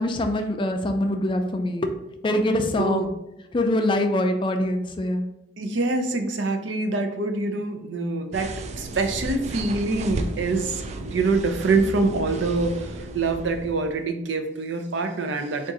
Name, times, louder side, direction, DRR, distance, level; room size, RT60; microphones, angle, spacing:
voice 1, 0.0-1.9 2.2-3.1 3.5-5.3, left 1 dB, 30° left, 5 dB, 0.4 m, -24 dB
voice 2, 2.8-3.1 5.6-15.7, right 3 dB, 90° right, 6 dB, 0.6 m, -25 dB
sound 1, 8.3-14.1, right 2 dB, 40° right, 0.3 m, -34 dB
3.6 x 2.5 x 4.0 m, 0.85 s
head